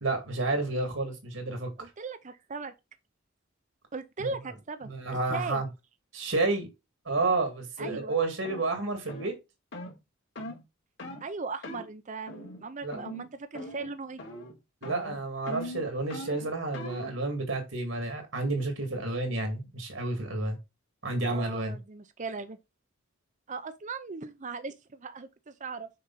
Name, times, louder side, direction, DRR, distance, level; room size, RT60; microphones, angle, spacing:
voice 1, 0.0-1.7 4.2-4.3 4.8-5.7 6.1-6.7 7.1-9.3 12.8-13.0 14.8-20.6 21.0-21.8, right 2 dB, 75° right, 2.3 m, -30 dB
voice 2, 1.8-2.7 3.9-5.6 7.8-8.2 11.2-14.2 21.2-22.6 23.5-25.9, right 4 dB, 40° right, 0.6 m, -38 dB
sound 1, 7.2-7.3 7.8-8.0 8.4-8.6 9.1-9.3 9.7-9.9 10.4-10.6 11.0-11.2 11.6-11.9 12.3-12.6 12.9-13.3 13.5-13.9 14.2-14.5 14.8-17.2, left 1 dB, 60° left, 2.8 m, -41 dB
6.6 x 5.1 x 4.1 m
head